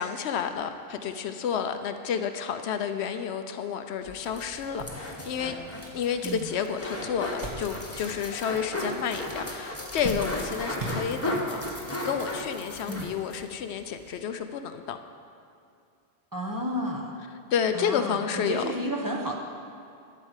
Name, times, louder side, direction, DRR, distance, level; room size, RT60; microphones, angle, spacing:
voice 1, 0.0-5.6 5.9-15.0 17.5-18.6, left 7 dB, 75° left, 8 dB, 0.8 m, -30 dB
sound 1, 4.0-4.1 4.5-8.2 8.5-9.2 9.5-11.6 12.3-12.4 13.7-13.9, right 1 dB, 40° right, 1.5 m, -39 dB
sound 2, 4.1-13.4 13.7-13.8 14.1-14.2, left 1 dB, 15° left, 1.1 m, -35 dB
voice 2, 16.3-17.2 17.7-19.3, equal, 20° right, -1 dB, 0.9 m, -32 dB
11.5 x 4.7 x 8.1 m, 2.5 s
omnidirectional pair, 1.1 m